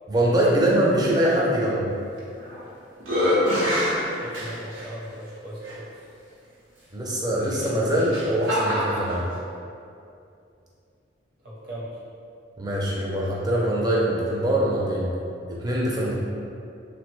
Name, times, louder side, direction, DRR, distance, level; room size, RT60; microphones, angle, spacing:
voice 1, 0.1-1.9 6.9-9.2 12.6-15.0 15.5-16.1, right 1 dB, 20° right, -5 dB, 0.4 m, -23 dB
sound 1, 2.2-2.6 3.0-4.9 5.6-5.7 7.5-9.2, left 1 dB, 90° right, 0.8 m, -25 dB
voice 2, 4.1-5.8 11.4-12.0 16.1-16.2, right 1 dB, 50° right, -7 dB, 0.7 m, -38 dB
3.2 x 2.1 x 3.1 m, 2.5 s
head